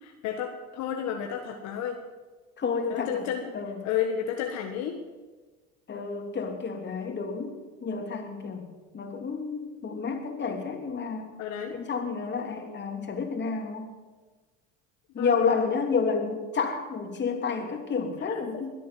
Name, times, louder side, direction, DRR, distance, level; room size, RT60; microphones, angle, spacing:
voice 1, 0.0-2.0 2.9-3.5 3.8-5.0 11.4-11.7 15.2-15.3 18.2-18.3, left 9 dB, 65° left, 3 dB, 1.6 m, -31 dB
voice 2, 2.6-3.2 3.5-3.9 5.9-7.5 7.8-8.7 8.9-11.3 11.7-13.9 15.1-18.7, left 5 dB, 35° left, 4 dB, 3.1 m, -30 dB
22.5 x 8.4 x 7.7 m, 1.3 s
supercardioid pair, 80°, 30 cm